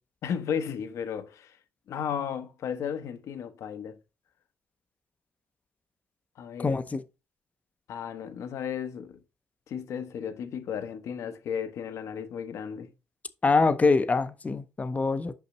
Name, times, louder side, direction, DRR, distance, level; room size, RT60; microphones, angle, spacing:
voice 1, 0.2-1.6 1.9-4.0 6.4-6.8 7.9-9.2 9.7-12.9, left 8 dB, 70° left, 0.9 m, -34 dB
voice 2, 6.6-7.0 13.4-15.3, left 4 dB, 30° left, 0.7 m, -24 dB
5.7 x 5.5 x 3.0 m
supercardioid pair, 70°, 5 cm